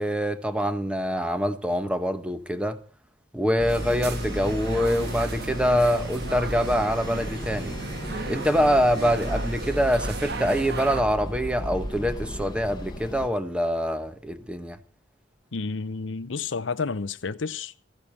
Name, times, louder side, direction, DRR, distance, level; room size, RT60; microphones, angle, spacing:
voice 1, 0.0-2.8 3.3-7.8 8.3-14.8, equal, 5° right, 1.1 m, -25 dB
sound 1, 3.6-13.3, left 1 dB, 20° left, 1.2 m, -35 dB
sound 2, 3.7-11.0, right 3 dB, 60° right, 1.3 m, -35 dB
voice 2, 15.5-17.8, left 4 dB, 70° left, 0.7 m, -30 dB
15.0 x 9.6 x 7.1 m
head